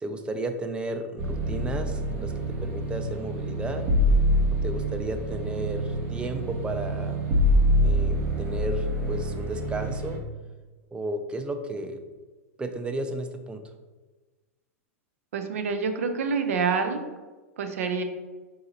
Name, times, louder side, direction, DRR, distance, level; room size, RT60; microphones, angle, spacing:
voice 1, 0.0-3.9 4.6-7.3 7.8-10.2 10.9-12.0 12.6-13.7, right 2 dB, 15° right, 6 dB, 0.4 m, -33 dB
sound 1, 1.2-10.2, equal, 40° right, 0.9 m, -26 dB
voice 2, 15.3-17.0 17.6-18.0, right 5 dB, 70° right, 7 dB, 0.5 m, -27 dB
4.0 x 3.8 x 2.8 m, 1.3 s
hypercardioid pair, 105°, 8 cm